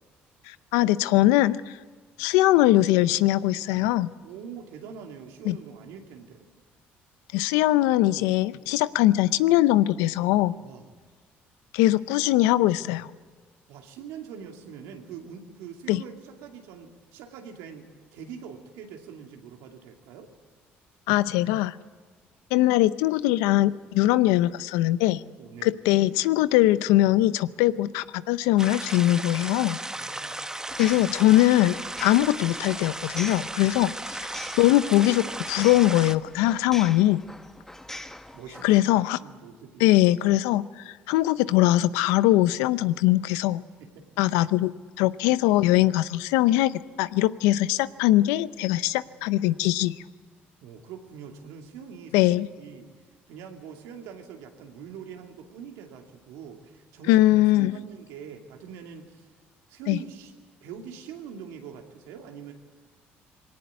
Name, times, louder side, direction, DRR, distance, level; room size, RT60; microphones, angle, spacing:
voice 1, 0.5-1.8 2.2-4.1 5.4-5.6 7.3-10.6 11.7-13.1 15.9-16.0 21.1-21.8 22.5-25.2 25.6-29.8 30.8-33.9 34.6-37.2 38.6-39.2 39.8-43.6 44.2-44.7 45.0-49.9 52.1-52.5 57.1-57.7 59.9-60.0, left 16 dB, 85° left, 16 dB, 0.6 m, -21 dB
voice 2, 4.2-6.5 10.6-10.9 13.7-20.3 25.4-25.7 29.9-30.4 33.7-33.9 38.3-38.9 39.2-40.0 43.8-44.1 50.6-52.2 52.6-52.9 53.3-59.3 59.7-60.3 60.6-62.5, right 7 dB, 80° right, 3 dB, 2.5 m, -43 dB
sound 1, 28.6-36.1, right 2 dB, 10° right, 1.1 m, -35 dB
sound 2, 30.7-38.8, left 1 dB, 10° left, 1.2 m, -43 dB
21.0 x 18.0 x 9.5 m, 1.5 s
supercardioid pair, 70°, 5 cm